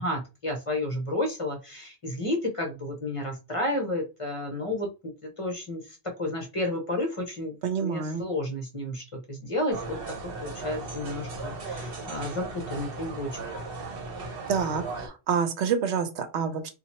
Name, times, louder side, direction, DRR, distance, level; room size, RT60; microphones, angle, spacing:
voice 1, 0.0-4.9 5.2-5.8 6.2-10.0 10.2-13.4, left 1 dB, 30° left, 2 dB, 0.8 m, -31 dB
voice 2, 7.6-8.2 14.5-16.7, right 6 dB, 80° right, 9 dB, 0.9 m, -27 dB
sound 1, 9.7-15.1, right 3 dB, 55° right, 1.1 m, -37 dB
2.8 x 2.4 x 4.2 m, 0.28 s
omnidirectional pair, 1.1 m